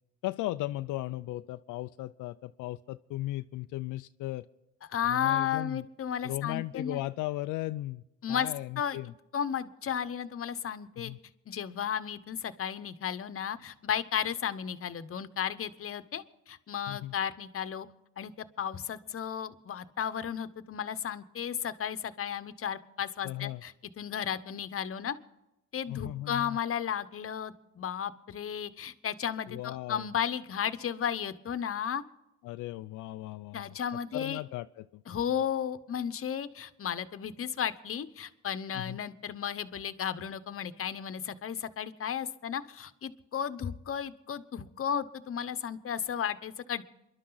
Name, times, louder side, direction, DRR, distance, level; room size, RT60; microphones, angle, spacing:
voice 1, 0.2-4.5 5.0-5.8 6.2-8.0 8.3-9.1 11.0-11.2 16.9-17.1 23.2-23.6 25.9-26.6 29.5-30.1 32.4-33.8 34.1-35.0 38.7-39.0, left 16 dB, 85° left, 10 dB, 0.5 m, -36 dB
voice 2, 4.9-7.0 8.2-8.5 8.8-9.0 9.3-11.1 11.5-17.9 18.2-25.2 25.7-32.0 33.5-34.4 35.1-46.8, left 8 dB, 45° left, 12 dB, 1.0 m, -34 dB
28.0 x 11.5 x 4.0 m, 0.92 s
cardioid pair, 90°, 30 cm